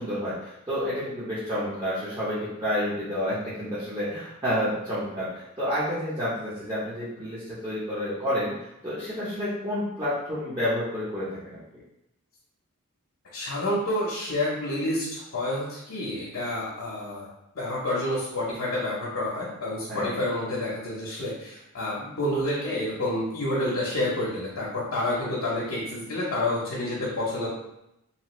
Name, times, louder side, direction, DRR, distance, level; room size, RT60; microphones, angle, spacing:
voice 1, 0.0-8.5 8.8-11.6 19.9-20.1, equal, 20° right, -11 dB, 0.7 m, -29 dB
voice 2, 13.3-17.3 17.6-27.5, left 1 dB, 65° left, -5 dB, 0.6 m, -29 dB
2.8 x 2.4 x 3.0 m, 0.85 s
head